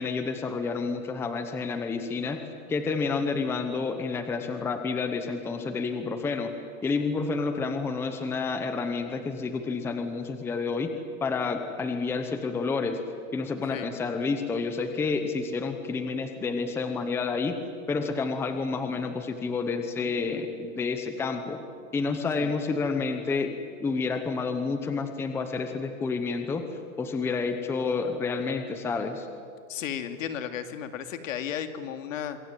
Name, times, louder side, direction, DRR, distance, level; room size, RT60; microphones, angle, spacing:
voice 1, 0.0-2.4 2.7-6.5 6.8-10.9 11.2-13.0 13.3-17.6 17.9-21.6 21.9-26.7 27.0-29.3, left 4 dB, 5° left, 7 dB, 0.9 m, -29 dB
voice 2, 29.7-32.4, left 9 dB, 70° left, 8 dB, 2.6 m, -34 dB
26.5 x 22.5 x 9.2 m, 2.2 s
supercardioid pair, 170°, 41 cm